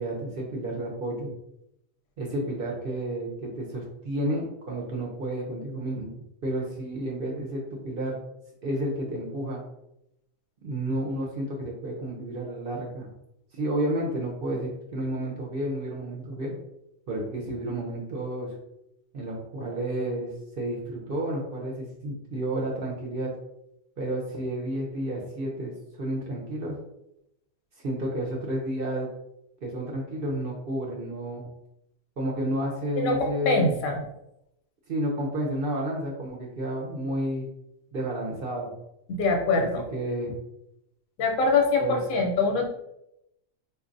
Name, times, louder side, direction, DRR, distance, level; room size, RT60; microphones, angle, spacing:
voice 1, 0.0-1.3 2.2-6.2 6.4-8.2 8.6-9.6 10.6-13.1 13.5-16.6 17.1-18.5 19.1-23.3 24.0-25.7 26.0-26.8 27.8-29.1 29.6-31.5 32.2-33.8 34.9-37.5 37.9-38.7 39.6-40.3 41.8-42.0, right 1 dB, 55° right, -1 dB, 0.7 m, -31 dB
voice 2, 33.0-34.0 39.1-39.9 41.2-42.6, left 3 dB, 90° left, 2 dB, 1.1 m, -24 dB
4.2 x 2.6 x 2.5 m, 0.83 s
omnidirectional pair, 1.4 m